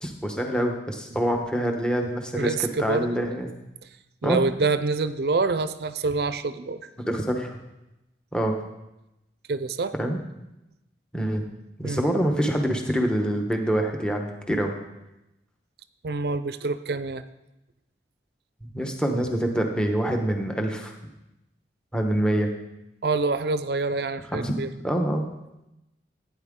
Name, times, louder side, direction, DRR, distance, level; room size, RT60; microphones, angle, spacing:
voice 1, 0.0-3.5 4.2-4.4 7.0-7.6 8.3-8.6 10.0-10.2 11.1-11.5 11.8-14.7 18.7-20.9 21.9-22.5 24.3-25.2, right 1 dB, 5° left, 2 dB, 1.0 m, -26 dB
voice 2, 2.4-3.3 4.2-6.9 9.5-9.9 11.8-12.1 16.0-17.2 23.0-24.7, right 3 dB, 65° right, 12 dB, 0.5 m, -26 dB
15.5 x 9.3 x 3.7 m, 0.95 s
head